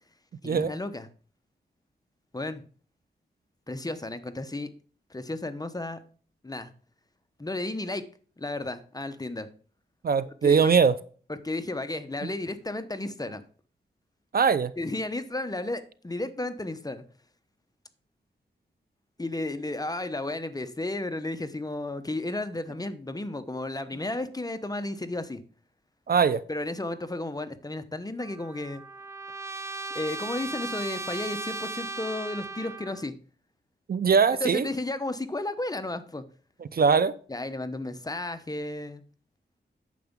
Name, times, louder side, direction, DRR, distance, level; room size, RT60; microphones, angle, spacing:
voice 1, 0.4-1.1 2.3-2.6 3.7-4.7 5.1-6.0 6.4-6.7 7.4-8.1 8.4-9.5 10.4-10.7 11.3-13.4 14.8-17.0 19.2-25.4 26.5-28.8 29.9-33.1 34.4-36.2 37.3-39.0, left 2 dB, 20° left, 1.0 m, -33 dB
voice 2, 10.0-10.9 12.2-12.3 14.3-14.7 26.1-26.4 33.9-34.7 36.7-37.1, right 6 dB, 55° right, 0.6 m, -21 dB
Trumpet, 28.2-33.1, right 3 dB, 15° right, 0.6 m, -37 dB
9.3 x 6.9 x 3.7 m
wide cardioid pair, 95°, 18 cm